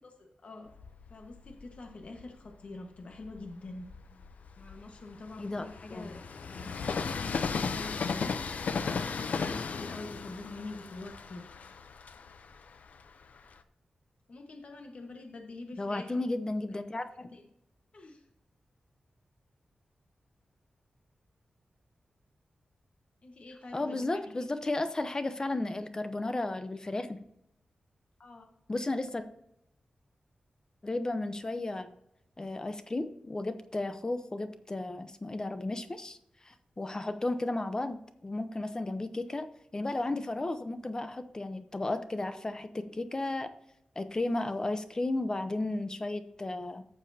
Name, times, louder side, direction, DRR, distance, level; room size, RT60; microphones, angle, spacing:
voice 1, 0.2-0.7 1.1-3.9 4.6-6.8 7.0-8.4 8.9-11.5 14.3-16.2 16.7-16.8 17.3-17.5 17.9-18.2 23.2-24.3 28.2-28.5, left 2 dB, 55° left, 3 dB, 1.4 m, -45 dB
Train, 0.7-2.4 3.0-13.6, left 5 dB, 75° left, 0.6 m, -36 dB
voice 2, 5.4-6.1 15.8-17.3 23.7-27.2 28.7-29.2 30.8-31.9 32.4-36.2 36.4-43.5 44.0-46.8, left 2 dB, 30° left, 10 dB, 0.8 m, -34 dB
14.0 x 7.1 x 2.8 m, 0.78 s
wide cardioid pair, 95°, 3 cm